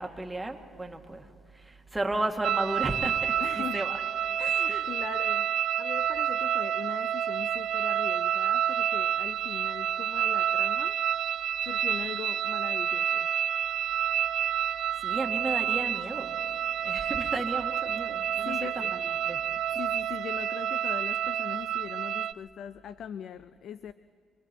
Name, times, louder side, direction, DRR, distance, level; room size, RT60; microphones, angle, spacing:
voice 1, 0.0-4.0 4.7-4.9 15.0-16.4 16.8-19.4, right 2 dB, 10° right, 3 dB, 1.9 m, -34 dB
sound 1, 2.4-22.3, right 10 dB, 70° right, 0.4 m, -29 dB
voice 2, 3.4-3.8 4.4-5.5 5.8-11.0 11.6-13.3 18.4-18.9 19.8-23.9, left 9 dB, 70° left, 14 dB, 0.5 m, -40 dB
26.0 x 24.0 x 4.5 m, 2.2 s
cardioid pair, 90°, 0 cm